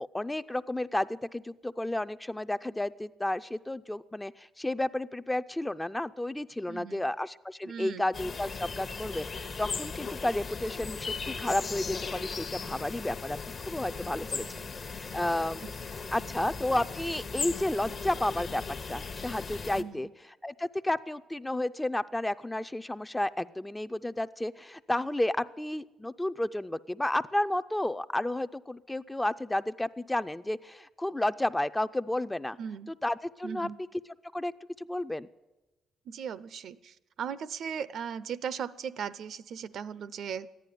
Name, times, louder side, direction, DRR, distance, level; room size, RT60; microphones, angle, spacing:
voice 1, 0.0-13.4 13.7-14.5 14.9-15.6 16.1-20.1 20.4-32.6 33.0-33.7 34.3-34.5 34.8-35.3, left 1 dB, 10° left, 12 dB, 0.4 m, -32 dB
voice 2, 6.7-7.1 7.6-8.1 14.4-14.7 15.6-15.9 16.2-16.4 19.8-20.0 32.6-32.9 33.4-33.8 36.1-40.5, right 7 dB, 65° right, 16 dB, 0.5 m, -38 dB
sound 1, 8.1-19.8, left 5 dB, 45° left, 0.9 m, -38 dB
14.0 x 10.5 x 9.2 m, 1.1 s
cardioid pair, 90°, 0 cm